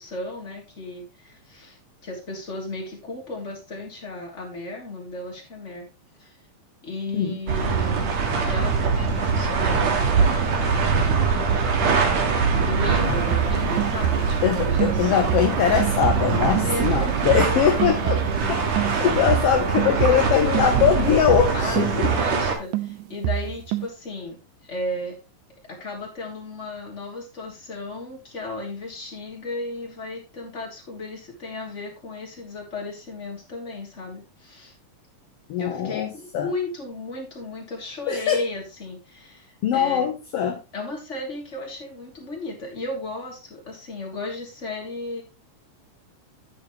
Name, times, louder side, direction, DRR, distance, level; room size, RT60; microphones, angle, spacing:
voice 1, 0.0-5.9 6.2-6.4 6.8-11.2 12.5-15.4 16.5-18.5 21.5-25.2 25.7-34.7 35.6-40.1 40.7-45.2, left 2 dB, 20° left, 0 dB, 3.2 m, -35 dB
sound 1, 7.5-22.6, right 5 dB, 60° right, 2.9 m, -23 dB
sound 2, 12.8-18.5 18.8-22.5 22.7-23.9, right 13 dB, 85° right, 2.3 m, -27 dB
voice 2, 14.4-22.1 35.5-36.5 38.1-38.4 39.6-40.6, left 9 dB, 65° left, 5 dB, 1.6 m, -22 dB
9.9 x 9.1 x 3.1 m, 0.28 s
omnidirectional pair, 3.6 m